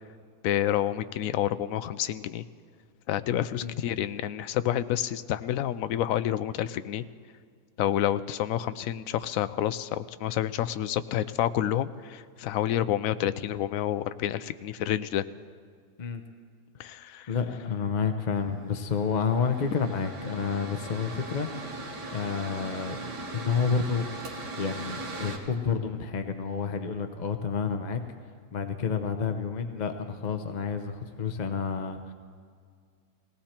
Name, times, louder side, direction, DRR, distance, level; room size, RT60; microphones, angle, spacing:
voice 1, 0.4-2.4 3.1-7.0 7.8-15.2 16.8-17.3, left 11 dB, 70° left, 13 dB, 0.9 m, -29 dB
voice 2, 17.3-21.5 22.1-23.0 23.3-24.1 24.6-28.0 28.5-32.1, left 5 dB, 50° left, 7 dB, 0.5 m, -29 dB
Mechanical fan, 18.3-25.4, right 2 dB, 90° right, 2.3 m, -39 dB
19.0 x 17.0 x 4.4 m, 2.1 s
omnidirectional pair, 1.8 m